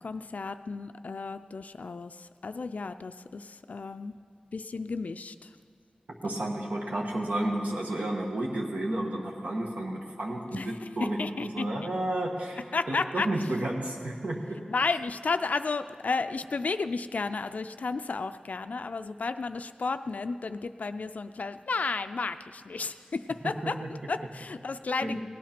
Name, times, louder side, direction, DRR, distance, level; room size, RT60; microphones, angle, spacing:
voice 1, 0.0-4.1 4.5-5.5 10.5-11.9 12.7-13.5 14.7-25.2, left 4 dB, 70° left, 10 dB, 0.4 m, -33 dB
voice 2, 6.2-12.6 12.9-14.6 23.6-23.9 25.0-25.1, right 1 dB, 65° right, -1 dB, 1.4 m, -31 dB
17.5 x 9.3 x 5.9 m, 2.2 s
wide cardioid pair, 70°, 3 cm